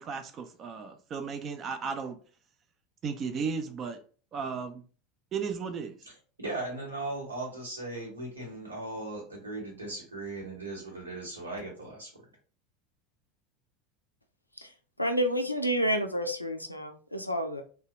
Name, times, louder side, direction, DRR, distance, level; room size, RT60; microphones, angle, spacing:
voice 1, 0.0-2.2 3.0-4.0 4.3-4.8 5.3-6.1, right 5 dB, 35° right, 7 dB, 0.4 m, -35 dB
voice 2, 6.4-12.1, right 2 dB, 80° right, -3 dB, 1.0 m, -38 dB
voice 3, 15.0-17.6, equal, 90° left, 6 dB, 0.3 m, -29 dB
2.7 x 2.2 x 2.9 m, 0.40 s
figure-of-eight pair, 75°, 0 cm